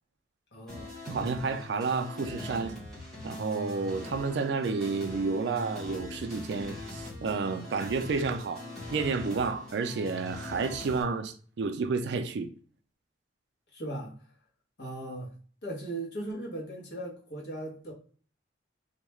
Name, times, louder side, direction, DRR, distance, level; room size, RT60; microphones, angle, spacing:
voice 1, 0.5-0.9 13.7-14.1 14.8-15.3 15.6-17.9, right 1 dB, 60° left, 0.9 m, -38 dB
sound 1, 0.7-11.0, left 2 dB, 5° left, 0.8 m, -42 dB
voice 2, 1.1-2.7 3.2-8.6 8.9-12.5, right 4 dB, 60° right, 0.3 m, -30 dB
2.3 x 2.1 x 3.0 m
head